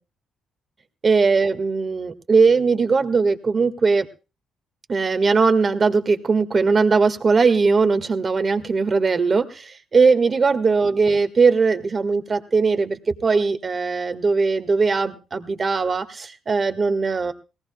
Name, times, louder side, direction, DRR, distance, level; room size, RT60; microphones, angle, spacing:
voice 1, 1.0-4.0 4.9-9.4 9.9-12.9 13.2-16.0 16.5-17.3, right 4 dB, 35° right, 9 dB, 1.7 m, -19 dB
20.0 x 17.5 x 2.3 m, 0.31 s
cardioid pair, 90°, 0 cm